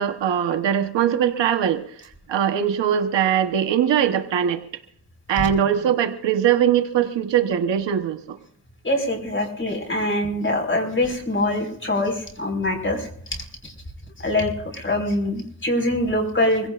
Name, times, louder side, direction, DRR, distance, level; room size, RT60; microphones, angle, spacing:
voice 1, 0.0-4.6 5.3-8.4, right 9 dB, 80° right, 8 dB, 1.3 m, -21 dB
voice 2, 8.8-13.1 13.6-13.7 14.2-16.7, left 1 dB, 25° left, 3 dB, 5.4 m, -24 dB
25.0 x 17.0 x 2.6 m, 0.66 s
supercardioid pair, 55°, 43 cm